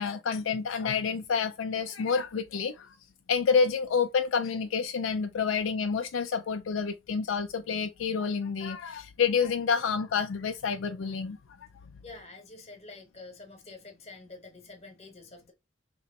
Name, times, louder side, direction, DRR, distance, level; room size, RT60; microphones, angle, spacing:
voice 1, 0.0-3.0 3.3-11.4, left 5 dB, 75° left, 0.4 m, -28 dB
voice 2, 12.0-15.5, left 3 dB, 30° left, 1.1 m, -47 dB
3.0 x 2.9 x 4.1 m
head